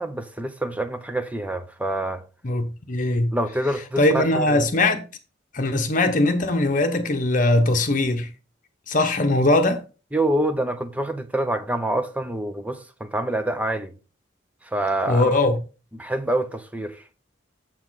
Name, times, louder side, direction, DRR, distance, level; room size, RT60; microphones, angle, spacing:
voice 1, 0.0-2.2 3.3-4.6 10.1-13.9 14.7-15.4 15.9-17.0, right 1 dB, 10° right, 0.7 m, -26 dB
voice 2, 2.4-3.4 4.0-5.0 5.5-8.3 8.9-9.8 15.1-15.6, left 2 dB, 45° left, 1.1 m, -20 dB
7.4 x 7.0 x 4.0 m
head